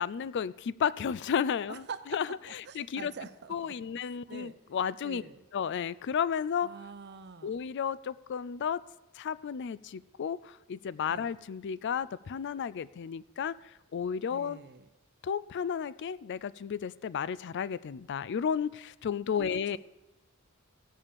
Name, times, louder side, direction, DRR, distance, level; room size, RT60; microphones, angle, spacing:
voice 1, 0.0-1.8 2.1-3.1 3.5-5.2 5.5-6.7 7.4-8.8 9.2-13.6 13.9-14.6 15.2-19.8, left 7 dB, 55° left, 19 dB, 0.4 m, -33 dB
voice 2, 1.7-2.2 2.7-3.8 4.3-4.6 5.0-5.4 6.6-7.6 11.1-11.3 14.3-14.9 19.4-19.8, right 5 dB, 55° right, 12 dB, 0.7 m, -44 dB
16.5 x 5.6 x 6.8 m, 0.99 s
head